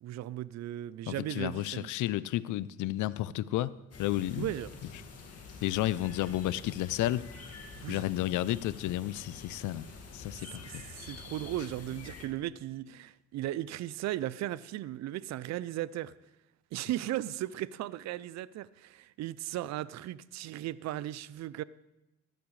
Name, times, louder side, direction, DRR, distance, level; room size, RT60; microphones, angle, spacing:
voice 1, 0.0-1.9 4.4-4.7 7.8-8.0 10.5-16.1 16.7-21.6, right 13 dB, 65° right, 18 dB, 0.4 m, -36 dB
voice 2, 1.1-3.7 4.0-4.5 5.6-7.3 7.9-9.8 10.1-10.8, left 14 dB, 80° left, 18 dB, 0.5 m, -32 dB
sound 1, 3.9-12.3, left 4 dB, 55° left, 2.0 m, -47 dB
14.5 x 12.0 x 3.2 m, 0.95 s
cardioid pair, 90°, 30 cm